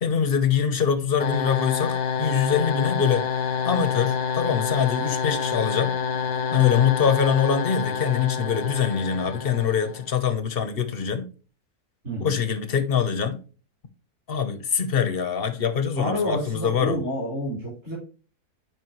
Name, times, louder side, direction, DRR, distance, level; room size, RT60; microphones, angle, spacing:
voice 1, 0.0-3.3 3.6-5.9 6.5-11.3 12.2-13.4 14.3-17.0, left 7 dB, 45° left, 0.9 m, -24 dB
sound 1, 1.2-10.1, left 6 dB, 70° left, 1.3 m, -27 dB
voice 2, 12.0-12.4 16.0-17.9, left 1 dB, 60° right, 5.2 m, -28 dB
9.4 x 5.1 x 3.1 m
omnidirectional pair, 1.7 m